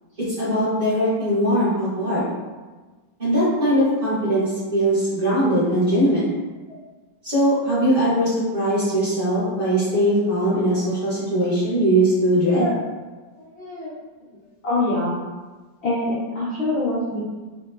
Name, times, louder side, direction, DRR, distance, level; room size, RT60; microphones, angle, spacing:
voice 1, 0.4-2.3 3.2-6.3 7.2-12.7, right 1 dB, 40° right, -11 dB, 0.8 m, -20 dB
voice 2, 13.4-13.9 14.6-15.2 15.8-17.2, left 2 dB, 85° left, -10 dB, 0.5 m, -25 dB
3.0 x 2.1 x 2.3 m, 1.3 s
omnidirectional pair, 1.9 m